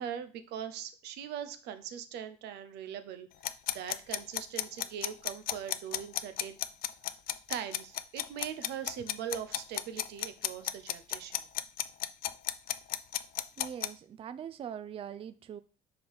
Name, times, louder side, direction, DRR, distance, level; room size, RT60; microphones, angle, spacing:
voice 1, 0.0-6.6 7.5-11.4, right 9 dB, 85° right, 0.7 m, -41 dB
sound 1, 3.4-13.9, left 12 dB, 60° left, 0.4 m, -33 dB
voice 2, 13.6-15.6, right 8 dB, 35° right, 0.3 m, -42 dB
5.3 x 3.8 x 4.7 m
cardioid pair, 110°, 17 cm